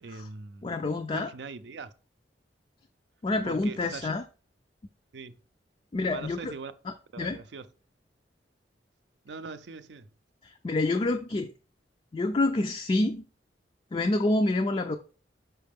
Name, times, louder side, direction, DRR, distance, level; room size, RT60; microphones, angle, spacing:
voice 1, 0.0-0.7 1.1-1.9 3.4-4.1 5.1-5.3 6.1-6.7 7.1-7.7 9.2-10.1, right 4 dB, 75° right, 0.5 m, -41 dB
voice 2, 0.6-1.3 3.2-4.2 5.9-6.5 7.2-7.4 10.4-11.5 12.1-13.2 13.9-15.0, left 2 dB, 30° left, 0.4 m, -27 dB
5.6 x 5.0 x 3.5 m
head